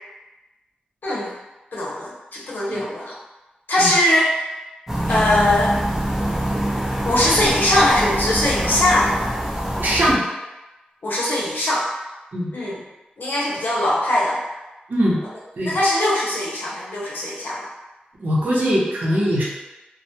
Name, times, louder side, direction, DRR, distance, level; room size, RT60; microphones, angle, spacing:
voice 1, 1.7-3.1 3.7-4.3 5.1-5.7 7.0-9.2 11.0-11.9 12.5-12.8 13.2-14.4 15.7-17.7, left 1 dB, 80° left, -5 dB, 0.7 m, -20 dB
sound 1, 4.9-10.1, right 1 dB, 10° right, 0.5 m, -24 dB
voice 2, 9.8-10.2 12.3-12.5 14.9-15.2 15.6-15.8 18.2-19.4, equal, 75° right, -6 dB, 0.7 m, -21 dB
2.1 x 2.1 x 2.8 m, 1.1 s
wide cardioid pair, 60°, 3 cm